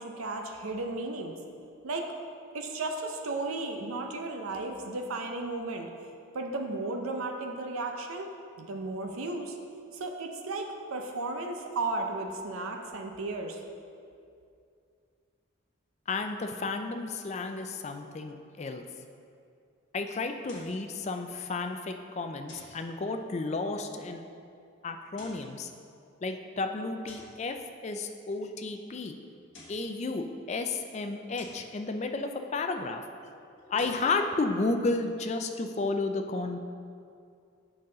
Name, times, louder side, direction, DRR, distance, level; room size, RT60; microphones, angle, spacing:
voice 1, 0.0-1.3 1.8-2.1 2.5-5.9 6.3-8.3 8.6-9.6 9.9-13.6, right 2 dB, 90° right, 3 dB, 0.6 m, -34 dB
voice 2, 16.1-18.8 19.9-24.2 24.8-25.7 26.2-27.6 27.8-29.2 29.7-33.0 33.6-36.6, left 3 dB, 30° left, 6 dB, 0.3 m, -32 dB
sound 1, 20.4-20.8 22.5-22.8 25.0-25.5 27.1-27.4 29.3-29.9 31.4-31.7 33.6-34.1, left 2 dB, 60° left, 1.4 m, -51 dB
7.7 x 5.5 x 3.8 m, 2.4 s
head